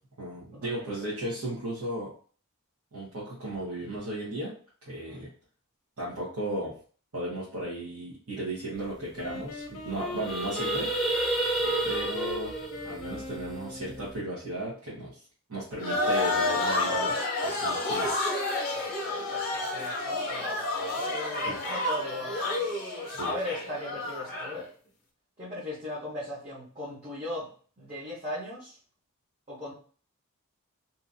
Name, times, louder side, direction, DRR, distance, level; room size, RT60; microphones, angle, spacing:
voice 1, 0.2-2.1 2.9-4.5 4.9-5.3 6.0-6.7 7.1-10.9 11.8-12.5 12.8-15.2 15.5-17.1 17.4-18.1 21.5-21.6 23.0-23.3, right 1 dB, 75° right, -9 dB, 1.1 m, -35 dB
sound 1, 8.9-9.0 9.2-9.4 9.8-14.1, right 2 dB, ahead, 0.4 m, -31 dB
Wind instrument woodwind instrument, 9.2-14.2, right 1 dB, 75° left, 0.5 m, -38 dB
sound 2, 15.8-24.6, left 2 dB, 40° left, 0.8 m, -30 dB
voice 2, 18.6-22.9 23.2-24.7 25.4-27.5 27.8-28.8 29.5-29.7, left 1 dB, 30° right, -9 dB, 1.0 m, -38 dB
2.8 x 2.5 x 2.6 m, 0.42 s
head